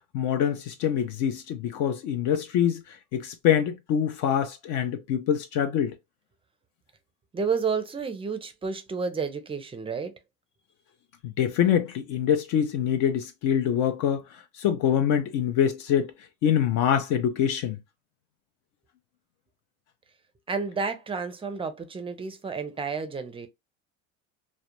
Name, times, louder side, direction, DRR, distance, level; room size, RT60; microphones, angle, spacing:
voice 1, 0.1-2.8 3.1-5.9 11.2-14.2 14.6-16.1 16.4-17.8, left 9 dB, 60° left, 0.5 m, -25 dB
voice 2, 7.3-10.1 20.5-23.5, right 5 dB, 15° right, 0.4 m, -31 dB
2.3 x 2.1 x 2.9 m
supercardioid pair, 100°, 33 cm